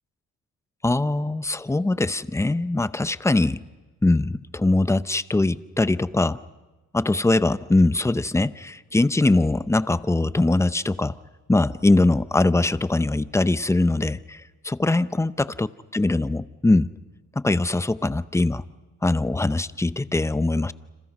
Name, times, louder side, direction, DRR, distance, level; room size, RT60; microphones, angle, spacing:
voice 1, 0.8-3.6 4.0-6.4 6.9-11.2 11.5-15.7 15.9-16.9 17.4-18.6 19.0-20.7, left 2 dB, 10° left, 14 dB, 0.7 m, -22 dB
29.5 x 27.0 x 5.4 m, 1.2 s
cardioid pair, 90°, 30 cm